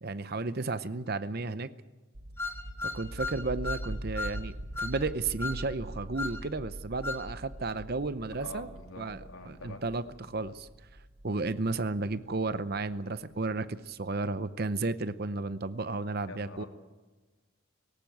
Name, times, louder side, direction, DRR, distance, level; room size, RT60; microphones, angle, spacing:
voice 1, 0.0-1.7 2.8-8.7 9.0-9.2 9.5-10.7 11.2-16.6, right 3 dB, 45° right, 13 dB, 0.7 m, -33 dB
sound 1, 2.1-12.8, right 1 dB, 70° right, 1.3 m, -43 dB
sound 2, 2.4-3.9 4.2-4.4 4.8-5.0 5.4-5.6 6.2-6.4 7.0-7.3, left 3 dB, 15° left, 1.7 m, -35 dB
voice 2, 8.4-9.8 16.3-16.7, left 2 dB, 90° left, 2 dB, 3.4 m, -45 dB
18.5 x 17.5 x 9.3 m, 1.3 s
head